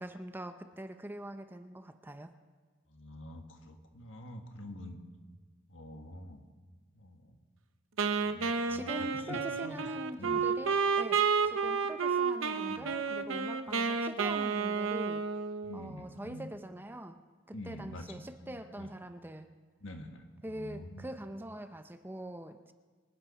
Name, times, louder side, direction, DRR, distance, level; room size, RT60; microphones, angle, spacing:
voice 1, 0.0-2.3 8.7-15.3 15.7-17.2 17.5-19.5 20.4-22.7, right 1 dB, 10° right, 8 dB, 0.6 m, -43 dB
voice 2, 2.9-5.0 5.7-6.4 7.0-7.4 8.2-9.4 9.6-9.9 10.2-10.4 12.7-12.9 15.6-16.5 17.5-18.1 18.4-18.9 19.8-21.1, left 1 dB, 70° left, 4 dB, 1.7 m, -46 dB
Wind instrument woodwind instrument, 8.0-15.9, right 5 dB, 85° right, 0.9 m, -31 dB
25.5 x 8.6 x 5.4 m, 1.4 s
head